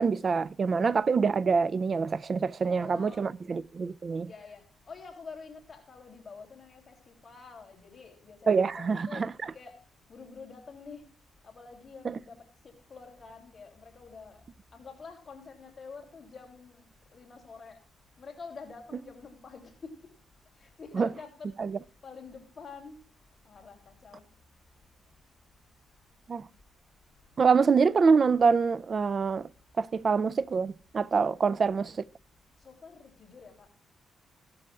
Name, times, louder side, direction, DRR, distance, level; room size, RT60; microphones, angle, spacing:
voice 1, 0.0-4.3 8.5-9.3 12.0-12.2 20.9-21.1 21.6-21.8 26.3-26.4 27.4-29.5 29.8-31.9, right 5 dB, 45° right, 0.4 m, -25 dB
voice 2, 2.6-3.3 4.3-9.2 9.5-9.7 10.1-11.0 11.4-12.4 12.6-14.4 14.7-16.8 17.1-17.8 18.2-19.9 20.6-21.5 22.0-23.0 23.4-24.2 31.2-31.3 32.6-33.7, left 5 dB, 40° left, 3.2 m, -47 dB
16.5 x 12.5 x 2.4 m
cardioid pair, 100°, 0 cm